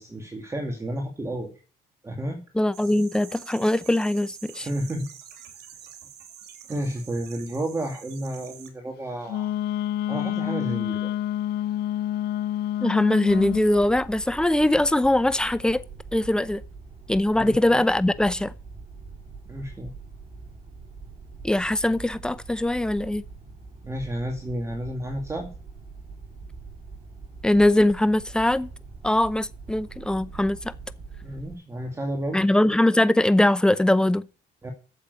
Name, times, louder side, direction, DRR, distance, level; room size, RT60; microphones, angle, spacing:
voice 1, 0.0-1.5 2.0-2.4 4.6-5.1 6.7-9.5 10.1-11.1 17.3-17.8 19.5-19.9 23.8-25.5 31.2-32.5 34.6-34.7, right 1 dB, 15° right, 2.2 m, -31 dB
voice 2, 2.5-4.7 12.8-15.8 16.1-16.6 17.1-18.5 21.4-23.2 27.4-28.7 29.0-30.7 32.3-34.2, left 1 dB, 5° left, 0.7 m, -21 dB
sound 1, 2.7-8.7, right 8 dB, 75° right, 2.9 m, -46 dB
Wind instrument woodwind instrument, 9.3-13.7, left 12 dB, 70° left, 0.6 m, -28 dB
sound 2, 13.3-31.6, right 4 dB, 35° right, 4.5 m, -43 dB
8.8 x 7.4 x 8.2 m
cardioid pair, 110°, 17 cm